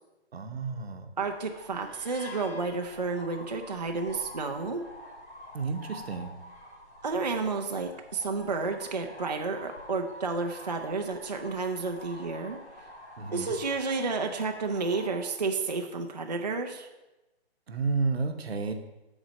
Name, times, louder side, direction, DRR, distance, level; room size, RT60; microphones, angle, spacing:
voice 1, 0.3-1.1 5.5-6.3 13.2-13.5 17.7-18.7, right 4 dB, 65° right, 7 dB, 0.9 m, -31 dB
sound 1, 1.2-15.2, left 1 dB, 90° left, 2.8 m, -48 dB
voice 2, 1.2-4.8 7.0-12.6 13.3-16.9, right 4 dB, 40° right, 4 dB, 0.4 m, -31 dB
sound 2, 1.8-3.9, left 6 dB, 65° left, 0.8 m, -51 dB
6.2 x 4.1 x 6.3 m, 1.0 s
hypercardioid pair, 175°, 33 cm